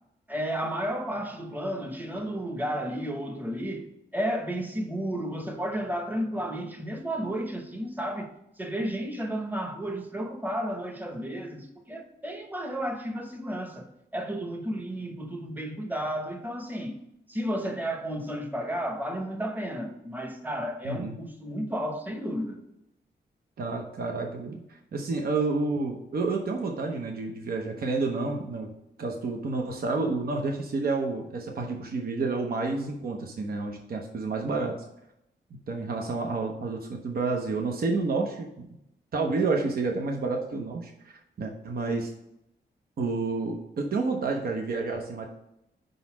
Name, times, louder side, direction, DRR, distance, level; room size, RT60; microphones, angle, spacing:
voice 1, 0.3-8.3 8.6-17.0 17.3-22.6, equal, 10° right, 0.9 m, -32 dB
voice 2, 23.6-24.6 24.9-28.7 29.0-34.8 35.7-38.7 39.1-42.1 43.0-45.2, right 3 dB, 60° right, 0.8 m, -29 dB
5.2 x 3.9 x 5.9 m
wide cardioid pair, 115°, 18 cm